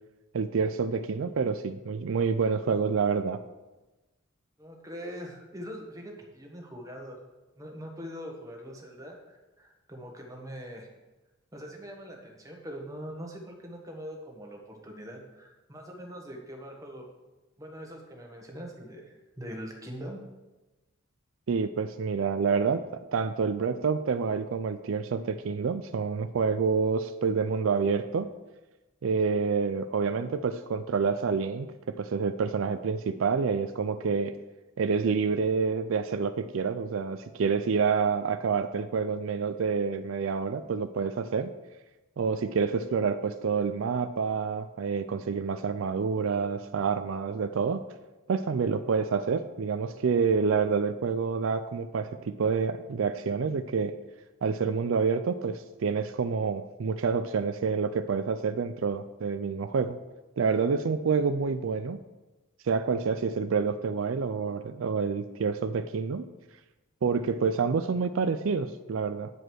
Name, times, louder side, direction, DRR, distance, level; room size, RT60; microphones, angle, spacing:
voice 1, 0.3-3.4 21.5-22.8 23.1-28.3 29.0-34.3 34.8-41.5 42.2-47.8 48.3-54.0 54.4-60.0 60.4-62.0 62.6-66.3 67.0-69.3, right 5 dB, 70° right, 10 dB, 0.4 m, -28 dB
voice 2, 4.6-7.2 7.6-10.9 11.5-17.1 17.6-20.2, equal, 15° right, 0 dB, 1.4 m, -42 dB
9.5 x 5.1 x 6.2 m, 1.1 s
head